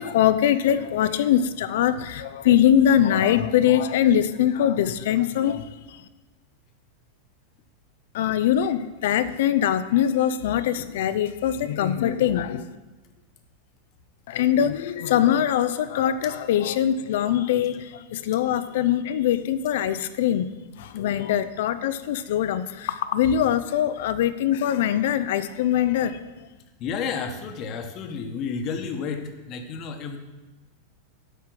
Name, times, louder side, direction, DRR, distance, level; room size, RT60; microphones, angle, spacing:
voice 1, 0.0-6.0 8.1-12.7 14.3-20.5 20.8-26.2, left 10 dB, 55° left, 12 dB, 0.5 m, -22 dB
voice 2, 26.8-30.2, left 5 dB, 35° left, 5 dB, 1.2 m, -31 dB
8.2 x 5.8 x 7.6 m, 1.2 s
figure-of-eight pair, 90°, 0 cm